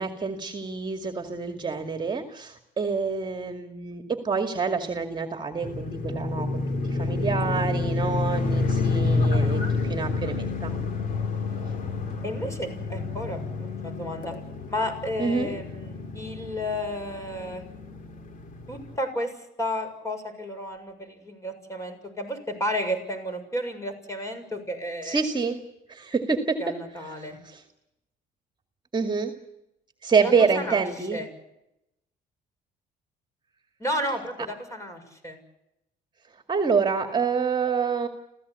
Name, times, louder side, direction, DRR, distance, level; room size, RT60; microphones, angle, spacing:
voice 1, 0.0-10.7 15.2-15.5 25.0-25.6 25.9-26.7 27.2-27.6 28.9-29.3 30.0-31.2 36.5-38.1, right 5 dB, 25° right, 6 dB, 2.3 m, -27 dB
sound 1, 5.6-19.0, left 3 dB, 50° left, 2.8 m, -29 dB
voice 2, 12.2-14.3 14.7-17.6 18.7-19.3 19.6-25.2 26.6-27.4 30.2-30.8 31.1-31.3 33.8-35.4, left 1 dB, 20° left, 6 dB, 6.9 m, -32 dB
28.0 x 16.0 x 8.5 m, 0.87 s
cardioid pair, 110°, 17 cm